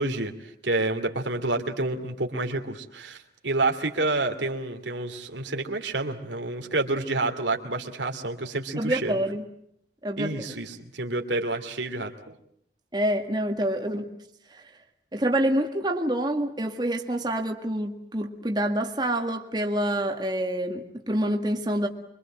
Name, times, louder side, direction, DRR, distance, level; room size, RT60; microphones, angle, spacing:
voice 1, 0.0-9.2 10.2-12.4, right 2 dB, 90° right, 4 dB, 2.7 m, -29 dB
voice 2, 8.8-9.4 10.0-10.3 12.9-14.1 14.5-14.6 15.1-21.9, right 1 dB, 25° right, 3 dB, 1.9 m, -27 dB
25.5 x 24.0 x 7.5 m, 0.71 s
head